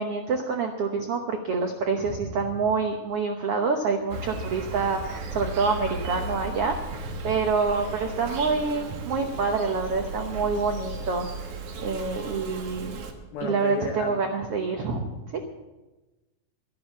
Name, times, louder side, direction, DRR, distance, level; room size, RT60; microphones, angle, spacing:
voice 1, 0.0-13.0 13.4-15.4, right 4 dB, 85° right, 4 dB, 1.3 m, -27 dB
Insect, 4.1-13.1, right 2 dB, 55° right, 1.9 m, -36 dB
voice 2, 13.3-14.2, left 5 dB, 80° left, 2 dB, 3.8 m, -32 dB
12.5 x 12.0 x 7.2 m, 1.1 s
omnidirectional pair, 4.2 m